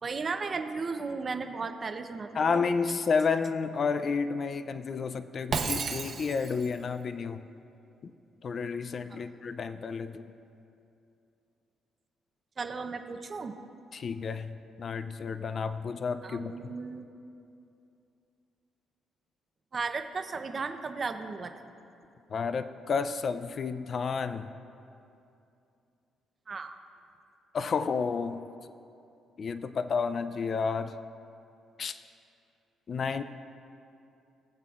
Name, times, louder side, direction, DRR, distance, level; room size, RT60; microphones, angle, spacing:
voice 1, 0.0-2.7 9.1-9.3 12.6-13.5 16.2-17.0 19.7-21.5 26.5-26.7, right 4 dB, 40° right, 7 dB, 0.7 m, -35 dB
voice 2, 2.4-7.4 8.0-8.1 8.4-10.3 13.9-16.5 22.3-24.5 27.5-28.4 29.4-31.0 31.8-32.0 32.9-33.2, left 5 dB, 50° left, 11 dB, 0.4 m, -31 dB
Shatter, 5.5-6.7, right 5 dB, 55° right, 1.0 m, -32 dB
22.0 x 7.6 x 2.4 m, 2.7 s
cardioid pair, 90°, 0 cm